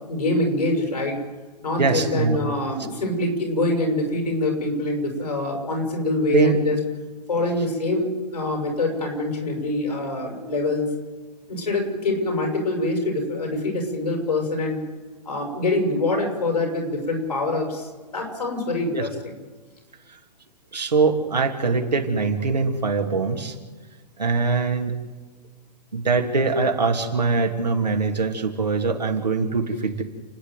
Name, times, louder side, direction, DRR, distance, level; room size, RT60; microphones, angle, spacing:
voice 1, 0.1-1.2 1.6-6.8 7.3-10.9 11.5-14.8 15.2-19.3, left 2 dB, 70° left, 2 dB, 7.5 m, -25 dB
voice 2, 1.8-2.4 6.3-6.6 18.9-19.1 20.7-23.5 24.2-25.0 25.9-30.0, right 4 dB, 75° right, 3 dB, 2.8 m, -22 dB
30.0 x 10.0 x 9.3 m, 1.3 s
figure-of-eight pair, 115°, 21 cm